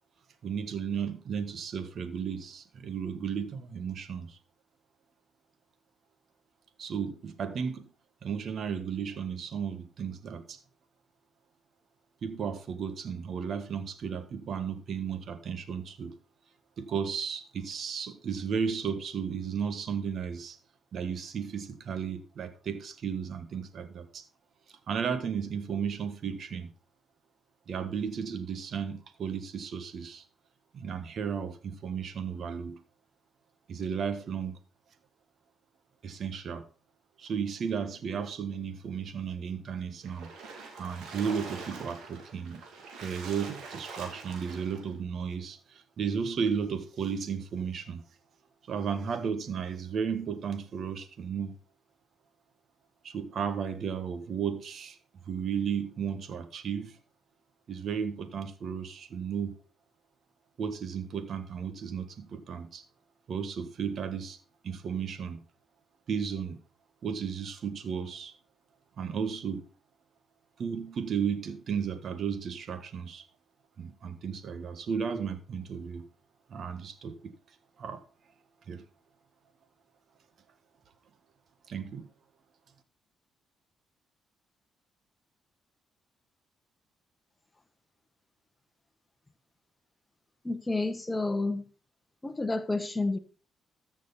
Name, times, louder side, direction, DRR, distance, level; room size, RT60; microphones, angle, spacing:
voice 1, 0.4-4.4 6.8-7.9 8.2-10.6 12.2-16.2 16.8-20.6 20.9-24.2 24.9-26.7 27.7-30.2 30.7-32.8 33.7-34.6 36.0-36.6 37.2-40.3 40.8-42.6 43.0-48.0 48.7-51.5 53.0-55.0 55.3-57.0 57.7-59.6 60.6-62.8 63.3-64.4 64.6-65.4 66.1-66.6 67.0-68.3 69.0-69.6 70.6-73.2 73.8-76.1 76.5-77.3 77.8-78.0 78.7-78.8 81.7-82.1, right 7 dB, 60° right, 1.4 m, -34 dB
Splash splatter, 40.0-44.9, right 4 dB, 85° right, 2.7 m, -44 dB
voice 2, 90.4-91.6 92.2-93.2, left 2 dB, 15° left, 1.2 m, -30 dB
14.0 x 6.4 x 4.1 m
cardioid pair, 90°, 0 cm